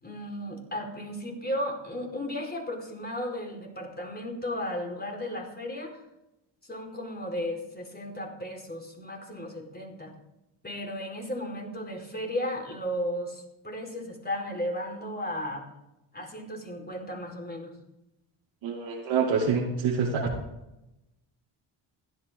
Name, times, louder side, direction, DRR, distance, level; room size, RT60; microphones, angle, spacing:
voice 1, 0.0-6.0 6.6-10.1 10.6-15.6 16.1-17.7, left 1 dB, 20° left, 2 dB, 4.7 m, -35 dB
voice 2, 18.6-20.3, right 5 dB, 85° right, -5 dB, 2.7 m, -26 dB
16.0 x 12.0 x 3.9 m, 0.91 s
cardioid pair, 70°, 47 cm